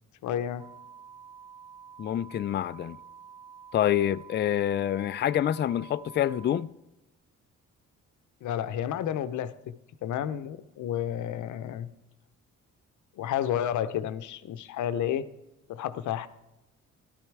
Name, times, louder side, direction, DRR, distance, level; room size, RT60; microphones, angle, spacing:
voice 1, 0.2-0.7 8.4-9.7 10.0-11.9 13.2-15.2 15.7-16.3, left 10 dB, 75° left, 0.8 m, -31 dB
sound 1, 0.6-6.6, right 7 dB, 10° right, 0.8 m, -49 dB
voice 2, 2.0-3.0 3.7-6.7, left 11 dB, 35° left, 0.4 m, -27 dB
14.0 x 12.0 x 4.7 m
cardioid pair, 90°, 30 cm